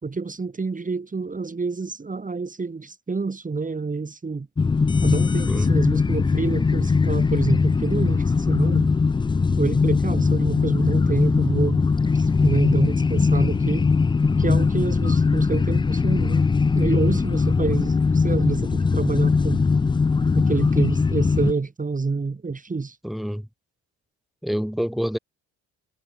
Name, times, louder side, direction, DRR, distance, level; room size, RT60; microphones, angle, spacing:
voice 1, 0.0-4.5 5.0-8.9 9.6-11.8 12.1-13.9 14.4-16.5 16.8-19.7 20.4-23.0, right 4 dB, 25° right, 3.6 m, -27 dB
sound 1, 4.6-21.5, left 4 dB, 15° left, 0.4 m, -20 dB
voice 2, 23.0-23.4 24.4-25.2, equal, ahead, 4.2 m, -27 dB
cardioid pair, 90°, 30 cm